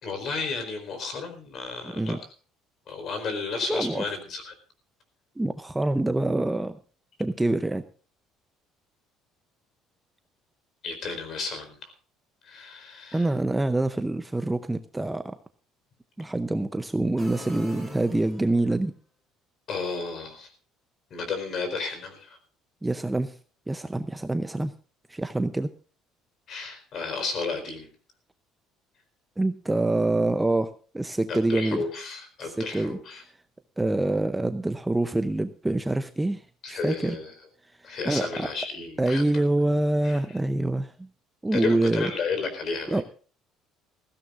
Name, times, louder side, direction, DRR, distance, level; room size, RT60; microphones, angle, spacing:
voice 1, 0.0-2.2 2.9-4.5 10.8-11.9 12.4-13.3 19.7-20.5 21.1-22.4 26.5-27.9 31.3-33.2 36.6-37.3 37.8-39.2 40.0-40.2 41.5-43.0, left 4 dB, 40° left, 8 dB, 4.4 m, -32 dB
voice 2, 1.8-2.2 3.7-4.0 5.4-6.8 7.2-7.8 13.1-15.4 16.2-18.9 22.8-23.3 23.7-24.7 25.1-25.7 29.4-31.8 32.4-33.0 33.8-36.4 36.7-37.2 38.1-38.5 39.0-41.1 41.4-42.1 42.9-43.0, right 2 dB, 5° right, 10 dB, 0.6 m, -26 dB
sound 1, 17.2-18.8, left 2 dB, 15° left, 3.5 m, -43 dB
20.0 x 15.5 x 2.5 m, 0.38 s
cardioid pair, 155°, 0 cm